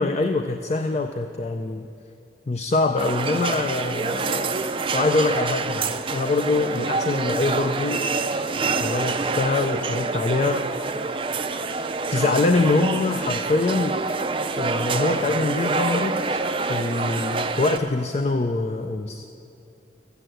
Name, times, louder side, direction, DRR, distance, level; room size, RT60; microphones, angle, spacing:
voice 1, 0.0-1.9 2.5-4.6 4.9-8.0 8.8-10.6 12.1-14.0 14.6-19.2, left 3 dB, 35° left, 7 dB, 0.4 m, -24 dB
sound 1, 3.0-17.8, right 4 dB, 30° right, 0.4 m, -26 dB
13.5 x 8.2 x 7.7 m, 2.7 s
head